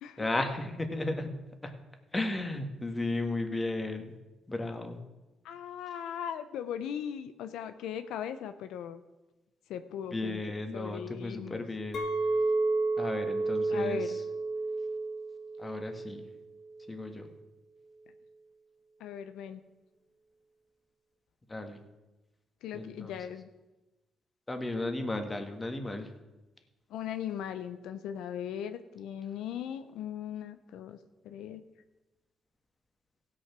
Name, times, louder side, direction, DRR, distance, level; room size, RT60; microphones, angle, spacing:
voice 1, 0.2-1.3 1.6-1.7 2.1-4.1 4.5-5.0 10.1-12.0 13.0-14.0 15.6-16.2 16.9-17.3 21.5-21.8 22.7-23.1 24.5-26.1, left 2 dB, 20° left, 6 dB, 1.6 m, -34 dB
voice 2, 5.4-9.0 9.7-11.6 13.7-14.2 19.0-19.6 22.6-23.5 26.9-31.0 31.2-31.6, left 9 dB, 85° left, 10 dB, 0.6 m, -38 dB
Chink clink, 11.9-16.3 16.6-17.1, right 3 dB, 60° left, 1.7 m, -31 dB
16.0 x 6.3 x 6.0 m, 1.1 s
cardioid pair, 90°, 0 cm